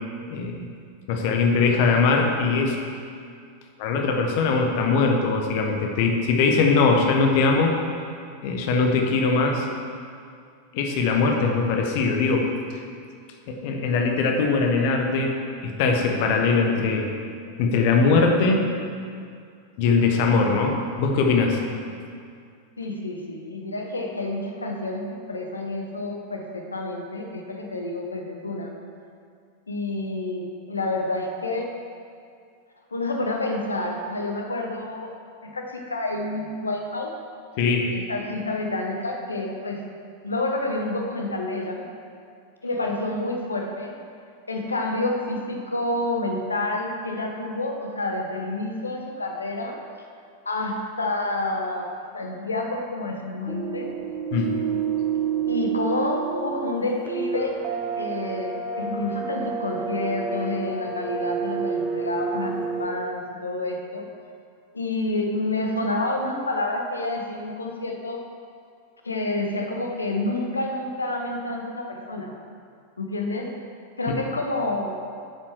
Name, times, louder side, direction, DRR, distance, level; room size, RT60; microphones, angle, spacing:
voice 1, 0.3-0.6 1.1-2.8 3.8-7.8 8.4-9.7 10.7-12.5 13.5-17.1 17.6-18.7 19.8-21.6 37.6-37.9 54.3-54.5 74.1-74.2, left 4 dB, 50° left, 2 dB, 1.2 m, -21 dB
voice 2, 22.8-28.8 29.7-31.7 32.9-35.1 35.4-37.2 37.9-39.8 40.2-41.9 42.6-43.9 44.5-49.8 50.4-53.9 55.5-57.6 58.0-64.1 64.7-68.2 69.0-72.3 73.0-73.6 74.0-75.0, left 2 dB, 75° left, 2 dB, 1.1 m, -29 dB
sound 1, 53.5-62.9, right 6 dB, 30° right, 1.2 m, -29 dB
9.1 x 7.4 x 4.8 m, 2.3 s
figure-of-eight pair, 90°, 0 cm